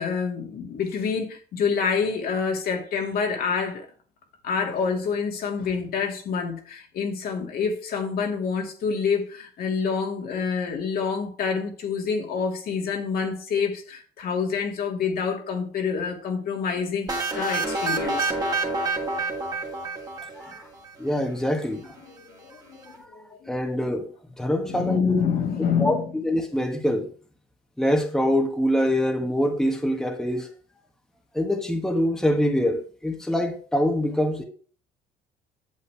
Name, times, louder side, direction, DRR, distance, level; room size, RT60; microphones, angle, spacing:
voice 1, 0.0-3.9 4.4-18.3 22.0-23.5 24.7-26.0, left 6 dB, 65° left, 2.2 m, -27 dB
sound 1, 17.1-20.9, right 3 dB, 20° right, 2.1 m, -28 dB
voice 2, 20.4-20.7 21.0-21.9 22.9-23.1 23.5-24.1 24.4-25.2 25.8-27.1 27.8-30.5 31.3-34.4, equal, 5° left, 1.3 m, -24 dB
8.3 x 7.6 x 3.4 m
cardioid pair, 110°, 17 cm